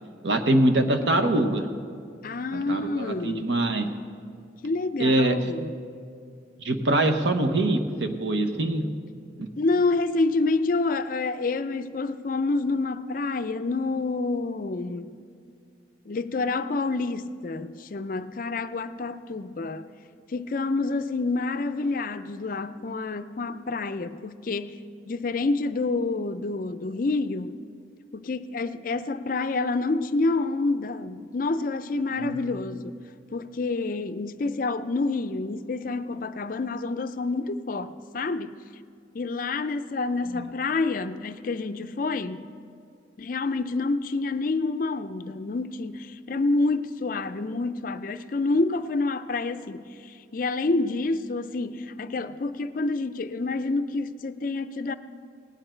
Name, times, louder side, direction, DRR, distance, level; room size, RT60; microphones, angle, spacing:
voice 1, 0.2-1.7 2.5-3.9 5.0-5.4 6.6-8.8 9.4-9.5 32.2-32.4 40.4-40.5, right 1 dB, 80° right, 1.0 m, -23 dB
voice 2, 2.2-3.4 4.6-5.7 9.6-15.1 16.1-19.9 20.3-24.8 25.1-27.6 28.1-32.9 33.3-38.6 39.1-42.5 43.2-54.9, left 3 dB, 50° left, 0.4 m, -28 dB
18.0 x 10.0 x 4.4 m
head